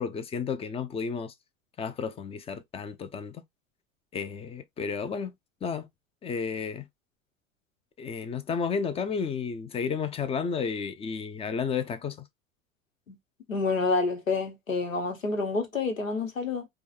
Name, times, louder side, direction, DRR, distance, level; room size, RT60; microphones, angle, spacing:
voice 1, 0.0-1.3 1.8-3.4 4.1-5.3 5.6-5.9 6.2-6.8 8.0-12.2, left 6 dB, 15° left, 0.6 m, -32 dB
voice 2, 13.5-16.7, left 4 dB, 85° left, 1.2 m, -28 dB
4.7 x 2.4 x 2.4 m
figure-of-eight pair, 80°, 39 cm